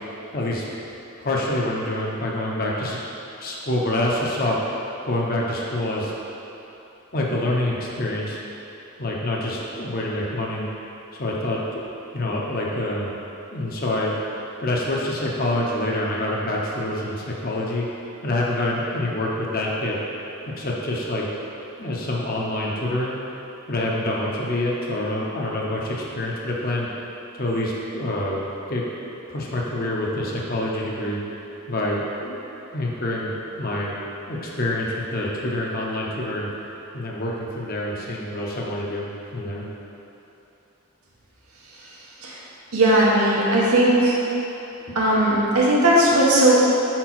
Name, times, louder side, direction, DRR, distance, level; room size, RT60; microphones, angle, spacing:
voice 1, 0.3-0.6 1.2-3.0 3.4-4.6 5.1-6.1 7.1-8.4 9.0-10.6 11.2-11.8 12.1-13.1 13.5-14.1 14.6-17.9 18.2-20.0 20.5-21.3 21.8-23.2 23.7-26.9 27.4-28.4 28.7-28.8 29.3-31.2 31.7-32.4 32.7-33.9 34.3-36.5 36.9-39.7 44.9-45.0, left 1 dB, 45° left, -4 dB, 0.9 m, -26 dB
voice 2, 42.7-44.2 44.9-46.6, right 1 dB, 85° right, -5 dB, 1.3 m, -17 dB
5.1 x 4.5 x 5.9 m, 3.0 s
head